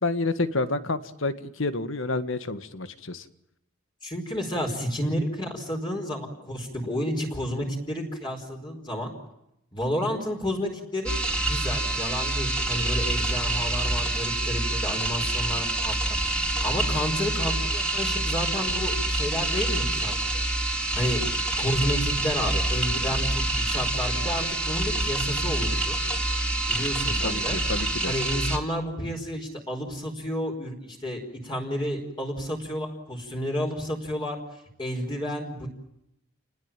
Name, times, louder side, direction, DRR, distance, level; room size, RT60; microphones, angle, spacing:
voice 1, 0.0-3.3 27.2-28.1, left 2 dB, 70° left, 11 dB, 1.7 m, -29 dB
voice 2, 4.0-9.1 9.7-11.2 11.5-16.0 16.3-16.4 16.6-20.4 20.9-21.2 21.6-26.0 26.7-27.6 28.1-34.4 34.8-35.7, equal, 20° left, 1 dB, 4.8 m, -31 dB
sound 1, 11.1-28.6, right 2 dB, 5° left, 3.6 m, -27 dB
29.5 x 20.0 x 9.0 m, 0.82 s
head